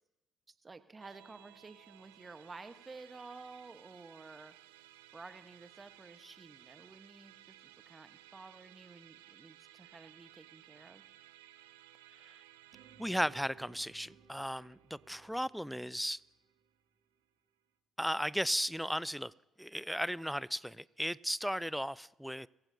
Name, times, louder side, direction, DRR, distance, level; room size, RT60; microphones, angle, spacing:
voice 1, 0.6-4.5 5.1-11.0, right 3 dB, 30° right, 1.2 m, -52 dB
Musical instrument, 1.0-16.5, right 14 dB, 85° right, 0.6 m, -59 dB
sound 1, 12.7-16.8, right 7 dB, 65° right, 1.7 m, -61 dB
voice 2, 13.0-16.2 18.0-19.3 19.6-22.5, equal, ahead, 0.4 m, -35 dB
24.5 x 15.5 x 2.8 m
hypercardioid pair, 50°, 0 cm